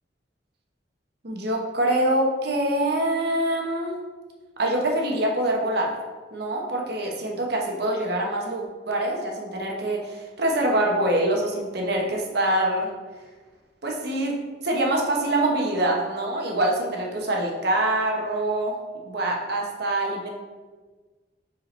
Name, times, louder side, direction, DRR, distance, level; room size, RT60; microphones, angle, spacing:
voice 1, 1.2-3.9 4.6-5.9 6.3-12.9 13.8-18.7 19.0-20.3, right 1 dB, 65° right, 0 dB, 1.1 m, -25 dB
7.5 x 4.6 x 3.3 m, 1.4 s
head